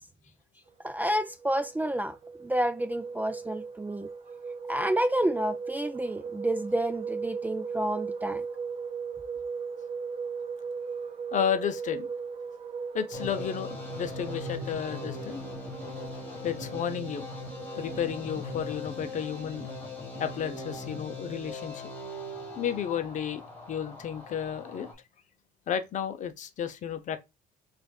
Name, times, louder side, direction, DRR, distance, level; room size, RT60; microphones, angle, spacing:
voice 1, 0.8-2.2 2.4-4.1 4.7-8.4, right 1 dB, 10° right, 0.4 m, -29 dB
sound 1, 0.9-18.6, right 5 dB, 35° right, 0.8 m, -38 dB
voice 2, 11.3-12.1 12.9-15.4 16.4-17.2 17.8-19.7 20.2-21.9 22.6-23.4 23.7-24.9 25.7-27.2, left 8 dB, 45° left, 0.6 m, -32 dB
sound 2, 13.1-24.9, left 2 dB, 10° left, 1.9 m, -40 dB
6.1 x 2.5 x 2.3 m
cardioid pair, 110°, 17 cm